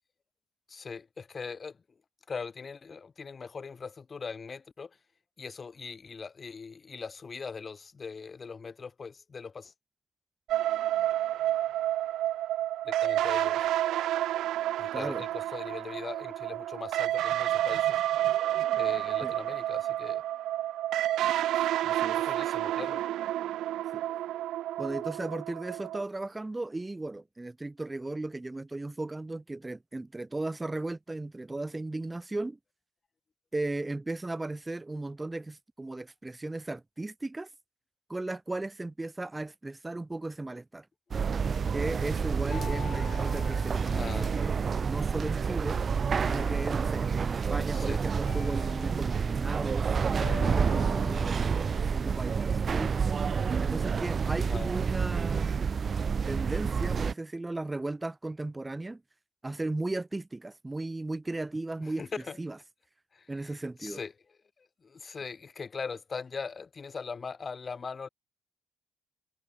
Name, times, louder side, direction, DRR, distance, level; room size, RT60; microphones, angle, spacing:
voice 1, 0.7-1.8 2.3-4.9 5.4-9.7 12.8-13.7 14.8-18.0 18.8-20.2 21.5-21.7 22.2-23.0 43.9-44.4 47.7-48.0 54.4-54.7 61.8-62.4 63.1-64.1 64.6-68.1, left 5 dB, 35° left, 2.0 m, -40 dB
sound 1, 10.5-26.0, right 13 dB, 85° right, 1.3 m, -30 dB
voice 2, 14.9-15.2 19.2-19.3 21.8-22.2 23.9-24.0 24.8-32.6 33.5-37.5 38.1-40.9 41.7-45.8 46.3-51.7 51.9-52.9 53.6-55.6 56.3-59.0 59.4-62.1 62.4-62.6 63.3-64.0, right 2 dB, 15° right, 2.0 m, -36 dB
sound 2, 41.1-57.1, right 6 dB, 45° right, 1.8 m, -29 dB
sound 3, 42.5-44.9 46.3-47.3 48.3-49.6 50.2-52.6, left 9 dB, 65° left, 3.7 m, -45 dB
cardioid pair, 90°, 0 cm